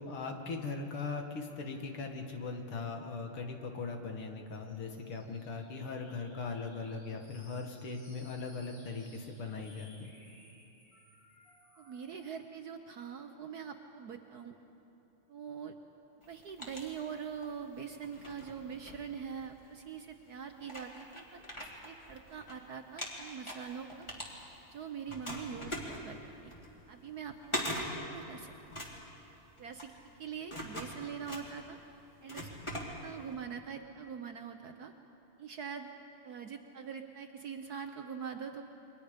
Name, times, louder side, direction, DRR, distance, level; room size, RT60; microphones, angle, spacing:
voice 1, 0.0-10.1, left 4 dB, 75° left, 3 dB, 2.6 m, -39 dB
sound 1, 4.5-12.5, left 1 dB, 45° left, 6.4 m, -61 dB
voice 2, 11.8-14.5 15.3-15.8 16.3-24.1 24.7-26.5 26.9-28.5 29.6-29.9 30.2-31.8 32.2-32.5 33.0-34.9 35.4-35.9 36.2-38.6, right 7 dB, 60° right, 6 dB, 1.1 m, -43 dB
sound 2, 16.2-17.5 18.0-19.7 20.3-20.4 20.6-22.5 22.8-24.8 25.1-33.4, equal, 15° left, 2.7 m, -42 dB
28.5 x 23.5 x 5.2 m, 2.9 s
omnidirectional pair, 2.4 m